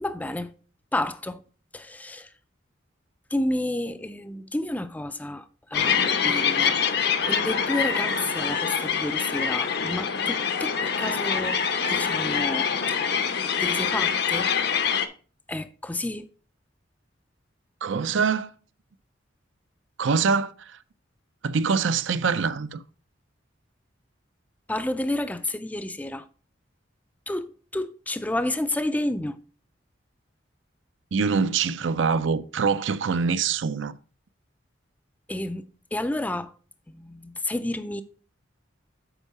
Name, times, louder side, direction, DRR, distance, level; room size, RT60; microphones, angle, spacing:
voice 1, 0.0-0.5 0.9-1.4 1.7-2.3 3.3-5.5 5.7-6.8 7.2-11.6 11.9-13.0 13.6-14.5 15.5-16.3 24.7-26.2 27.3-29.4 35.3-36.5 36.9-38.0, left 1 dB, 10° left, 0.4 m, -30 dB
sound 1, 5.7-15.1, left 7 dB, 55° left, 0.7 m, -25 dB
voice 2, 17.8-18.5 20.0-20.5 21.4-22.8 31.1-34.0, right 5 dB, 75° right, 0.5 m, -24 dB
8.1 x 4.7 x 4.7 m
head